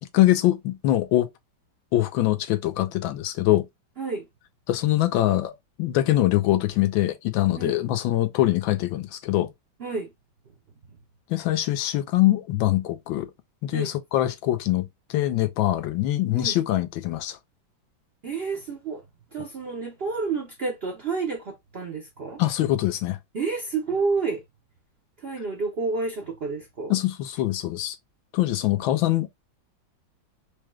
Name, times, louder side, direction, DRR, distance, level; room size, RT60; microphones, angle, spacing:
voice 1, 0.1-1.3 1.9-3.7 4.7-9.5 11.3-13.3 13.6-17.4 22.4-23.2 26.9-28.0 28.3-29.3, left 15 dB, 80° left, 1.4 m, -23 dB
voice 2, 18.2-19.0 19.3-22.4 23.3-24.4 25.2-27.0, right 4 dB, 90° right, 0.5 m, -29 dB
4.8 x 2.3 x 3.0 m
omnidirectional pair, 2.1 m